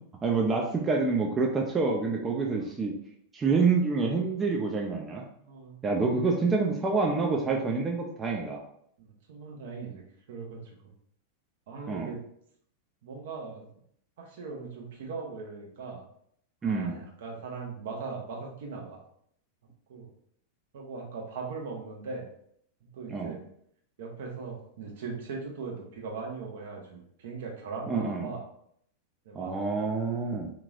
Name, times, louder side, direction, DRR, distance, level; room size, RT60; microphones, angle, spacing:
voice 1, 0.2-2.9 3.3-5.2 5.8-8.6 11.9-12.1 16.6-17.0 23.1-23.3 27.9-28.3 29.3-30.5, right 4 dB, 20° right, 0 dB, 0.5 m, -27 dB
voice 2, 5.4-5.7 6.0-6.2 7.4-7.6 9.0-10.0 10.3-10.6 11.7-12.2 13.0-13.6 14.2-16.0 16.6-19.0 19.9-20.1 20.7-22.3 22.9-23.4 24.0-28.4 29.3-29.5, right 4 dB, 55° right, 0 dB, 0.9 m, -39 dB
3.8 x 2.9 x 2.4 m, 0.68 s
figure-of-eight pair, 90°, 0 cm